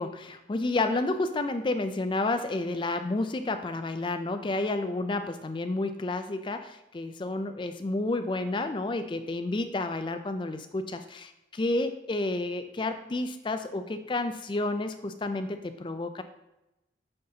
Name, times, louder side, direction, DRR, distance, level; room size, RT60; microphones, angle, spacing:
voice 1, 0.0-16.2, left 2 dB, 25° left, 8 dB, 0.3 m, -30 dB
8.6 x 4.0 x 2.8 m, 0.94 s
head